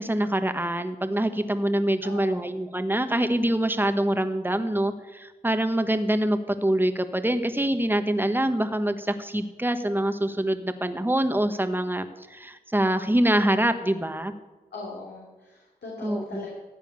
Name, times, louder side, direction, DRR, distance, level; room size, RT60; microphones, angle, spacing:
voice 1, 0.0-14.3 16.0-16.5, right 1 dB, 10° right, 9 dB, 1.3 m, -25 dB
voice 2, 2.0-2.4 14.7-16.5, left 3 dB, 90° left, -4 dB, 3.1 m, -39 dB
14.5 x 9.0 x 7.0 m, 1.2 s
cardioid pair, 45°, 17 cm